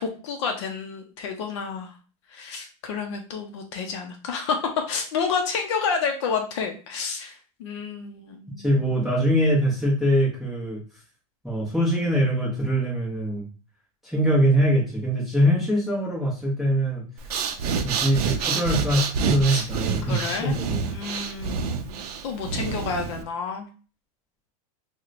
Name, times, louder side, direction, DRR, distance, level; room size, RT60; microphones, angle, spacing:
voice 1, 0.0-1.9 2.3-4.6 4.9-8.8 19.5-19.7 20.0-20.6 20.8-23.7, left 5 dB, 50° left, 4 dB, 0.5 m, -30 dB
voice 2, 8.6-10.8 11.4-13.5 14.0-17.0 17.8-20.8, equal, ahead, -6 dB, 0.7 m, -23 dB
Breathing, 17.2-23.2, right 6 dB, 85° right, 0.5 m, -28 dB
4.3 x 2.1 x 2.4 m, 0.37 s
supercardioid pair, 175°, 19 cm